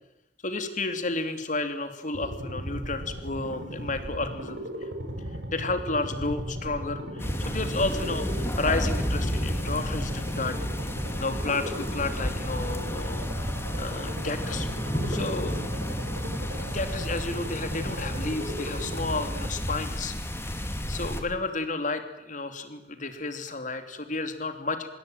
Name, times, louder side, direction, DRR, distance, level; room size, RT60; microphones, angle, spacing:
voice 1, 0.4-4.7 5.5-10.7 11.2-13.5 13.8-14.7 15.1-15.6 16.6-20.1 20.9-24.9, left 3 dB, 45° left, 8 dB, 3.2 m, -32 dB
sound 1, 2.1-19.5, equal, 85° right, 5.5 m, -36 dB
sound 2, 7.2-21.2, equal, 15° left, 2.7 m, -31 dB
26.0 x 21.5 x 9.2 m, 0.87 s
head